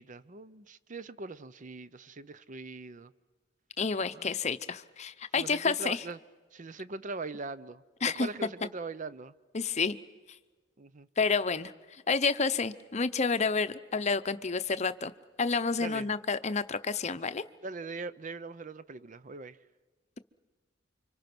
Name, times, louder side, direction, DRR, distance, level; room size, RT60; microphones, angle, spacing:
voice 1, 0.0-3.1 4.1-4.3 5.4-6.2 6.5-9.3 10.8-11.1 15.8-16.1 17.6-19.6, right 3 dB, 40° right, 0.7 m, -41 dB
voice 2, 3.8-6.0 8.0-8.3 9.5-10.0 11.2-15.1 15.4-17.4, left 4 dB, 35° left, 0.7 m, -29 dB
29.5 x 25.0 x 6.1 m
head